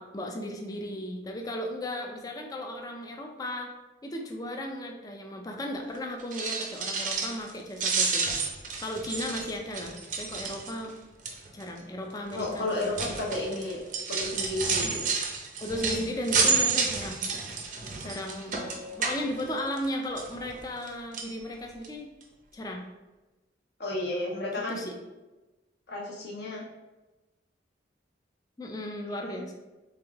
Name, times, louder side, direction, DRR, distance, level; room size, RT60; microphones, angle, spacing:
voice 1, 0.0-3.7 4.0-8.3 8.8-11.0 11.5-13.1 14.8-14.9 15.6-17.2 18.0-18.6 19.0-22.1 22.5-22.9 24.7-24.9 28.6-29.5, left 1 dB, 20° left, 2 dB, 0.4 m, -35 dB
sound 1, 6.2-7.5 7.8-10.9 11.2-11.6 12.3-19.9 20.2-20.9 21.1-21.3 21.8-21.9 22.2-22.3, right 4 dB, 45° right, 0.5 m, -30 dB
voice 2, 12.3-13.8 14.1-15.1 18.5-19.1 23.8-24.8 25.9-26.6 29.1-29.3, left 2 dB, 60° left, -3 dB, 1.0 m, -33 dB
3.5 x 3.4 x 3.4 m, 1.1 s
head